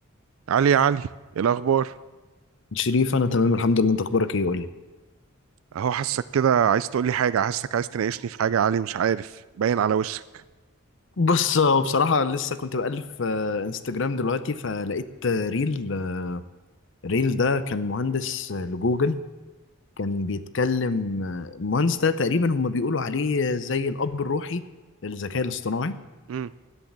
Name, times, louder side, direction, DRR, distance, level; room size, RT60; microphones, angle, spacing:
voice 1, 0.5-1.1 1.3-2.0 5.7-10.4 26.3-26.5, right 8 dB, 80° right, 16 dB, 0.4 m, -23 dB
voice 2, 2.7-4.7 11.2-16.4 17.0-19.2 20.0-24.6 25.0-26.0, left 4 dB, 60° left, 14 dB, 0.6 m, -24 dB
13.5 x 10.5 x 7.2 m, 1.2 s
head